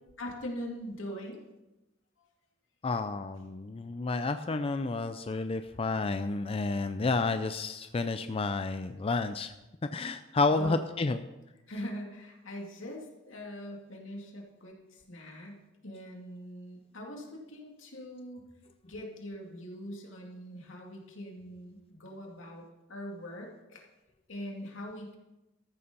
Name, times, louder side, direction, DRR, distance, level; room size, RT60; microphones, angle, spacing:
voice 1, 0.2-1.4 10.5-10.8 11.7-18.4 18.8-22.6 22.9-23.9 24.3-25.1, equal, 85° left, 0 dB, 2.5 m, -42 dB
voice 2, 2.8-9.5 9.9-11.2, left 3 dB, 30° left, 9 dB, 0.4 m, -30 dB
14.0 x 7.0 x 5.5 m, 0.99 s
head